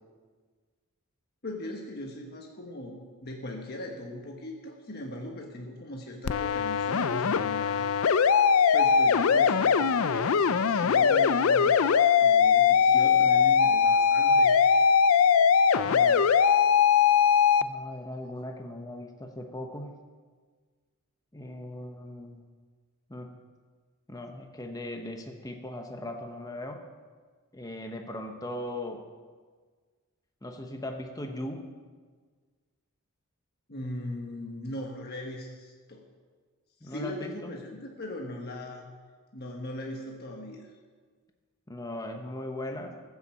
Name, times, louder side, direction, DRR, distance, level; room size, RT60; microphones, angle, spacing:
voice 1, 1.4-8.0 8.7-11.8 12.2-14.6 33.7-36.0 36.8-38.9 39.3-40.7, left 1 dB, 45° left, 0 dB, 1.4 m, -39 dB
sound 1, 6.3-17.6, left 6 dB, 65° left, 0.4 m, -21 dB
voice 2, 15.8-16.3 17.6-20.0 21.3-22.5 23.1-23.4 24.1-26.8 27.5-29.0 30.4-31.7 36.8-37.5 41.7-43.0, left 1 dB, 15° left, 4 dB, 0.9 m, -38 dB
15.0 x 7.0 x 7.3 m, 1.5 s
head